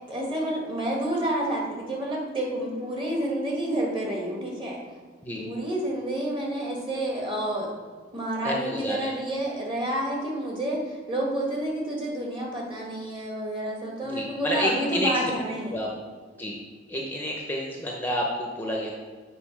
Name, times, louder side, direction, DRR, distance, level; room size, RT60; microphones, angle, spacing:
voice 1, 0.1-4.8 5.4-7.7 8.1-15.9, right 1 dB, 30° right, -2 dB, 1.8 m, -29 dB
voice 2, 8.4-9.1 14.0-15.1 15.7-15.9 16.4-16.6 16.9-18.9, equal, 10° left, -1 dB, 0.8 m, -29 dB
7.6 x 4.0 x 6.0 m, 1.5 s
head